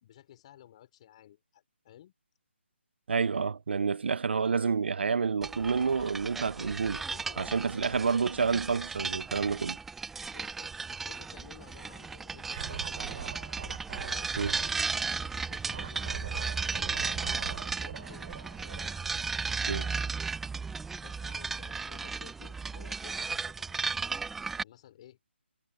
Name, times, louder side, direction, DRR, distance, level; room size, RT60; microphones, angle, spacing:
voice 1, 0.0-2.1 6.0-6.2 6.6-8.1 10.3-13.3 13.9-14.3 14.6-17.4 17.7-18.3 18.7-19.0 19.6-20.3 21.0-23.9 24.6-25.2, left 12 dB, 30° left, 4.0 m, -54 dB
voice 2, 3.1-7.0 7.4-9.8 14.4-14.5 19.7-19.9, right 5 dB, 60° right, 0.6 m, -29 dB
sound 1, 5.4-24.6, right 4 dB, 5° right, 0.4 m, -35 dB
Scratching (performance technique), 12.4-14.8 15.7-20.0, right 8 dB, 45° right, 5.9 m, -43 dB
hypercardioid pair, 160°, 7 cm